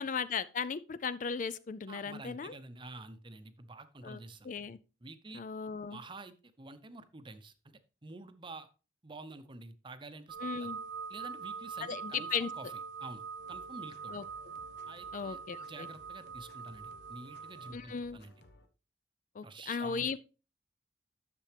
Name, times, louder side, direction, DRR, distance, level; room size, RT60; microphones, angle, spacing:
voice 1, 0.0-2.5 4.0-4.8 5.3-6.0 10.4-10.8 11.9-12.5 14.1-14.2 15.1-15.9 17.7-18.2 19.4-20.2, left 6 dB, 50° left, 0.4 m, -37 dB
voice 2, 1.9-4.5 5.0-5.4 5.9-8.7 9.0-10.7 11.1-12.7 13.0-14.1 14.9-18.4 19.4-20.2, right 2 dB, 30° right, 0.7 m, -49 dB
sound 1, 10.3-17.7, right 5 dB, 85° right, 0.7 m, -43 dB
sound 2, 13.4-18.7, left 2 dB, 70° left, 0.9 m, -60 dB
10.5 x 6.8 x 3.3 m
head